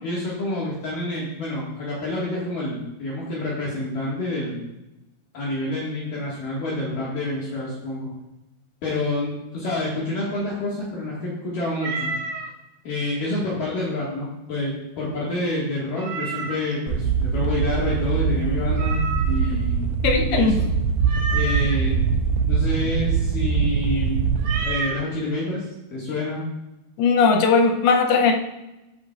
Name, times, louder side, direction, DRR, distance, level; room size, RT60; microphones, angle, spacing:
voice 1, 0.0-4.6 5.3-8.1 8.8-12.1 12.8-19.0 19.3-19.8 20.2-20.7 21.3-22.0 22.4-24.2 24.6-26.4, left 2 dB, 55° left, -7 dB, 3.1 m, -28 dB
Meow, 11.8-12.5 16.0-16.7 18.8-19.6 21.0-21.8 24.4-25.0, right 4 dB, 65° right, 2.0 m, -30 dB
sound 1, 16.9-24.6, right 6 dB, 85° right, 2.1 m, -23 dB
voice 2, 20.0-20.6 27.0-28.3, left 5 dB, 75° left, 4 dB, 2.5 m, -18 dB
13.5 x 8.5 x 2.5 m, 0.94 s
omnidirectional pair, 4.9 m